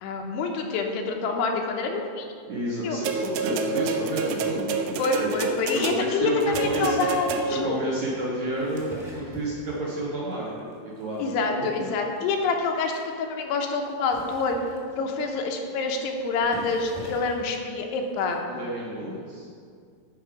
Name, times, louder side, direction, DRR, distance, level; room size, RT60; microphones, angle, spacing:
voice 1, 0.0-2.3 2.8-3.0 5.0-7.8 11.2-14.6 15.0-18.4, left 4 dB, 85° left, 2 dB, 3.0 m, -27 dB
voice 2, 2.5-5.3 5.7-7.0 7.5-8.9 9.2-11.9 18.5-19.5, right 1 dB, 65° right, -5 dB, 1.9 m, -30 dB
sound 1, 3.1-7.8 8.8-8.9, right 5 dB, 85° right, 2.8 m, -29 dB
sound 2, 6.4-7.5 8.3-9.9 10.3-10.7 11.0-11.2 11.4-11.5 11.7-11.8 12.2-12.3 12.8-12.9 13.9-15.2 16.0-16.1 16.4-17.5 18.3-18.4, left 1 dB, 10° left, 1.0 m, -41 dB
11.5 x 5.4 x 5.0 m, 2.2 s
omnidirectional pair, 4.7 m